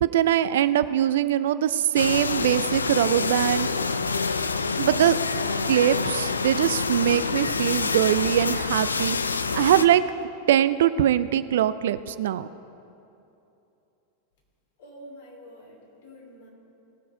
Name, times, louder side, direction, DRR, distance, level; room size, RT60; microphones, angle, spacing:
voice 1, 0.0-3.7 4.8-5.2 5.7-9.2 9.5-10.0 10.5-12.5, right 11 dB, 60° right, 14 dB, 0.3 m, -22 dB
sound 1, 1.9-9.8, left 4 dB, 75° left, 0.4 m, -27 dB
voice 2, 14.8-16.5, equal, 55° left, -2 dB, 3.3 m, -47 dB
18.0 x 6.6 x 5.1 m, 2.9 s
figure-of-eight pair, 90°, 0 cm